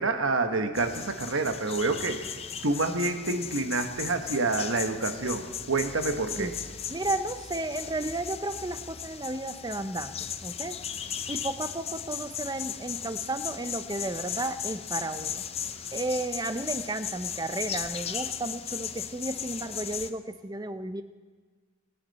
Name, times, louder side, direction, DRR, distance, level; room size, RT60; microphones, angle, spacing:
voice 1, 0.0-2.2 2.6-6.5, right 3 dB, 75° right, 7 dB, 1.3 m, -28 dB
sound 1, 0.7-20.1, left 8 dB, 30° left, 0.5 m, -37 dB
voice 2, 6.9-10.8 11.3-15.4 15.9-21.0, right 2 dB, 20° right, 11 dB, 0.6 m, -33 dB
23.5 x 10.0 x 4.1 m, 1.5 s
head